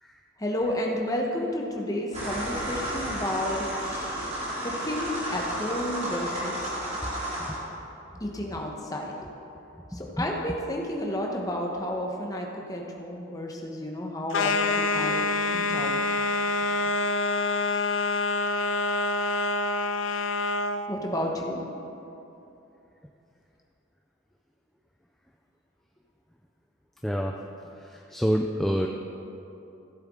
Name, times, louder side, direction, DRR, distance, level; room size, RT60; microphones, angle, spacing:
voice 1, 0.4-4.3 4.6-6.7 8.2-9.1 10.0-16.1 20.9-21.6, left 1 dB, 15° left, 0 dB, 1.1 m, -31 dB
sound 1, 2.1-7.6, equal, 30° right, 2.6 m, -32 dB
voice 2, 7.1-7.8 8.4-8.5 9.9-10.3 27.0-27.4 27.7-28.9, equal, ahead, 1 dB, 0.3 m, -29 dB
sound 2, 14.3-20.8, left 3 dB, 70° left, 0.5 m, -26 dB
15.0 x 7.9 x 3.7 m, 2.9 s
head